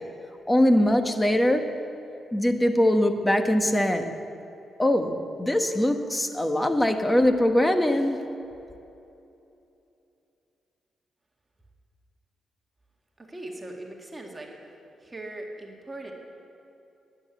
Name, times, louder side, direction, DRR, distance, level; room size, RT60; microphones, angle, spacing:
voice 1, 0.5-1.7 2.3-4.1 4.8-8.2, left 1 dB, 10° left, 7 dB, 1.2 m, -22 dB
voice 2, 13.2-14.5 15.0-16.1, right 1 dB, 20° right, 0 dB, 2.0 m, -39 dB
10.0 x 9.8 x 8.1 m, 2.8 s
cardioid pair, 70°, 0 cm